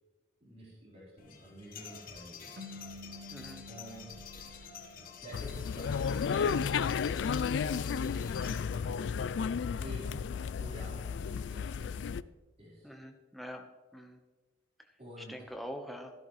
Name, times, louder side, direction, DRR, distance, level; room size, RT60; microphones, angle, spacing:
voice 1, 0.4-2.6 3.2-3.3 3.7-4.1 5.2-10.2 10.6-12.3 12.6-12.9 15.0-15.5, equal, 35° right, -7 dB, 4.2 m, -50 dB
sound 1, 1.2-9.0, left 6 dB, 50° left, 1.3 m, -49 dB
sound 2, 2.6-5.7, left 2 dB, 60° right, 0.9 m, -50 dB
voice 2, 3.3-3.7 12.8-13.6 13.9-14.2 15.3-16.1, equal, ahead, 3 dB, 1.1 m, -44 dB
sound 3, 5.3-12.2, left 6 dB, 65° left, 0.3 m, -33 dB
14.0 x 12.0 x 3.2 m, 1.2 s
head